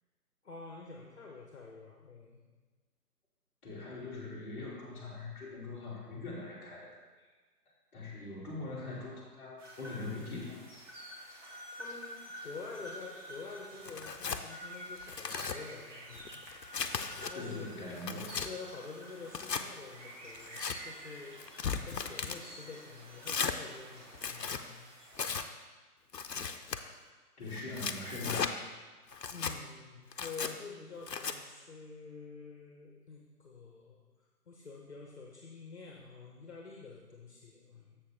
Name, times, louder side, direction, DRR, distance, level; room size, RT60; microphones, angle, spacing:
voice 1, 0.4-2.4 11.7-12.2 12.4-16.4 17.3-17.7 18.4-21.3 21.8-24.9 26.9-27.1 29.3-34.0 34.5-38.0, left 4 dB, 45° left, -1 dB, 1.1 m, -48 dB
voice 2, 3.6-7.3 7.9-10.6 17.3-18.3 27.4-28.6, left 3 dB, 10° left, -9 dB, 1.6 m, -42 dB
sound 1, 9.6-25.4, equal, 50° right, 1.8 m, -49 dB
Tearing, 13.8-14.4 15.0-15.6 16.1-17.3 17.8-18.5 19.3-19.6 20.3-20.8 21.4-22.4 23.2-23.6 24.1-24.6 25.2-25.5 26.1-26.8 27.5-28.5 29.1-29.6 30.1-30.5 31.1-31.4, left 6 dB, 85° left, 0.7 m, -36 dB
sound 2, 17.5-24.7, right 1 dB, 70° right, 2.5 m, -59 dB
7.3 x 6.6 x 3.6 m, 1.3 s
figure-of-eight pair, 145°, 48 cm